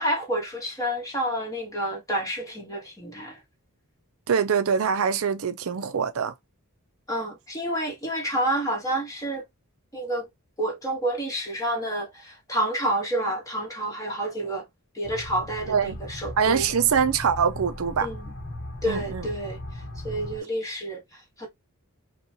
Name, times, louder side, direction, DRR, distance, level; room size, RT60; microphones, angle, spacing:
voice 1, 0.0-3.4 7.1-9.4 9.9-10.3 10.6-14.6 14.9-16.7 18.0-18.3 18.8-19.6 20.0-21.5, right 1 dB, 15° left, 1.6 m, -29 dB
voice 2, 4.3-6.3 15.7-16.0 16.4-18.1 18.9-19.2, right 6 dB, 70° right, 0.5 m, -24 dB
sound 1, 15.0-20.4, left 1 dB, 50° left, 1.0 m, -38 dB
5.3 x 2.3 x 2.8 m
head